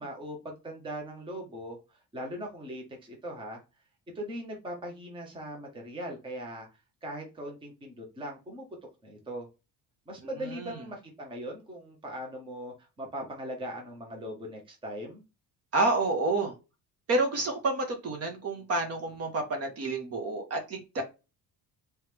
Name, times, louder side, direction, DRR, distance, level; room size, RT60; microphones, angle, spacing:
voice 1, 0.0-3.6 4.1-6.7 7.0-8.7 9.0-9.5 10.1-15.2, equal, 15° right, 1 dB, 0.8 m, -40 dB
voice 2, 10.4-10.8 15.7-16.5 17.1-21.0, right 2 dB, 45° right, 4 dB, 1.0 m, -29 dB
3.2 x 3.1 x 3.3 m, 0.28 s
cardioid pair, 175°, 35 cm